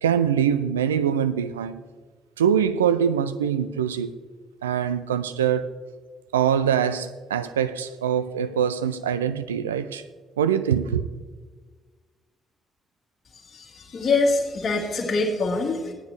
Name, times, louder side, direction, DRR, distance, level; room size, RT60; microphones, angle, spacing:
voice 1, 0.0-1.8 2.4-4.1 4.6-5.7 6.3-10.0 10.4-11.1, right 8 dB, 80° right, 0.3 m, -23 dB
voice 2, 13.3-15.9, left 3 dB, 40° left, 1.7 m, -24 dB
15.0 x 9.7 x 3.3 m
figure-of-eight pair, 40°, 0 cm